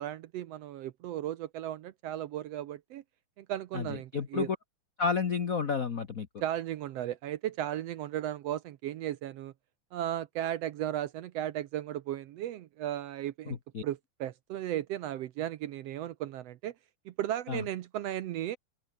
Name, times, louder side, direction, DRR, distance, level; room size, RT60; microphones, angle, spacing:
voice 1, 0.0-3.0 3.4-4.5 6.4-9.5 9.9-13.6 13.8-16.7 17.0-18.6, right 12 dB, 70° right, 1.6 m, -35 dB
voice 2, 3.7-4.6 5.0-6.3 13.5-13.8 17.5-17.6, left 5 dB, 75° left, 0.7 m, -31 dB
open air
omnidirectional pair, 3.5 m